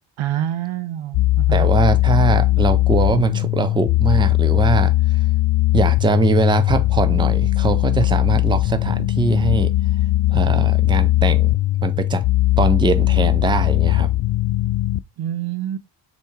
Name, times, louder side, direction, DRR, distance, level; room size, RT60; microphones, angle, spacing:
voice 1, 0.2-1.7 15.2-15.8, right 11 dB, 80° right, 0.8 m, -26 dB
sound 1, 1.1-15.0, left 16 dB, 65° left, 0.5 m, -18 dB
voice 2, 1.5-4.9 5.7-9.7 10.3-11.6 11.8-12.2 12.6-14.1, right 3 dB, 10° right, 0.5 m, -21 dB
4.1 x 2.8 x 4.6 m
cardioid pair, 70°, 48 cm